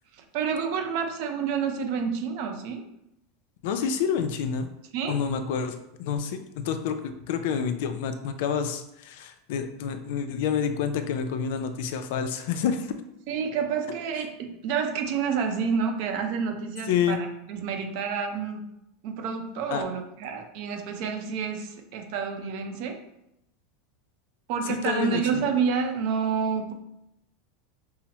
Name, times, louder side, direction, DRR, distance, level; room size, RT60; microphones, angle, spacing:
voice 1, 0.1-2.8 4.9-5.2 13.3-18.6 19.0-23.0 24.5-26.7, right 6 dB, 60° right, 4 dB, 0.6 m, -29 dB
voice 2, 3.6-4.7 5.1-13.0 16.9-17.2 19.7-19.8 24.7-25.4, left 7 dB, 70° left, 8 dB, 0.4 m, -28 dB
5.6 x 2.0 x 2.9 m, 0.83 s
supercardioid pair, 145°, 0 cm